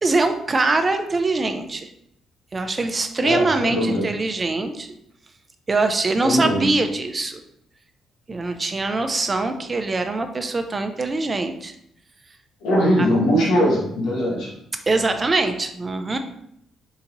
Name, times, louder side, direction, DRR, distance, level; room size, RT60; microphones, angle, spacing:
voice 1, 0.0-1.9 2.5-4.9 5.7-7.4 8.3-11.7 13.0-13.1 14.9-16.2, right 3 dB, 30° right, 7 dB, 0.5 m, -23 dB
voice 2, 3.2-4.1 6.2-6.7 12.6-14.5, equal, 80° left, -3 dB, 1.5 m, -20 dB
4.0 x 2.8 x 3.9 m, 0.74 s
cardioid pair, 90°, 0 cm